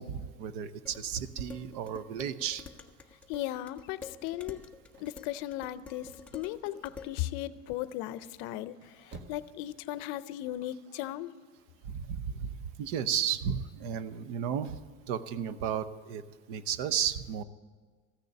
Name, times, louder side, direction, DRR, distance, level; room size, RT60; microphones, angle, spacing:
voice 1, 0.0-2.6 11.8-12.5 12.8-14.8 15.1-16.2 16.5-17.4, right 8 dB, 60° right, 13 dB, 0.9 m, -33 dB
Dishes pots and pans, 0.9-7.2, left 5 dB, 5° left, 0.3 m, -49 dB
voice 2, 3.3-4.6 5.0-11.3, left 14 dB, 55° left, 15 dB, 0.6 m, -37 dB
sound 1, 4.9-6.8 7.2-7.7 8.5-9.6 9.9-10.0, right 3 dB, 30° right, 1.0 m, -52 dB
14.5 x 6.7 x 8.8 m, 1.5 s
cardioid pair, 170°, 37 cm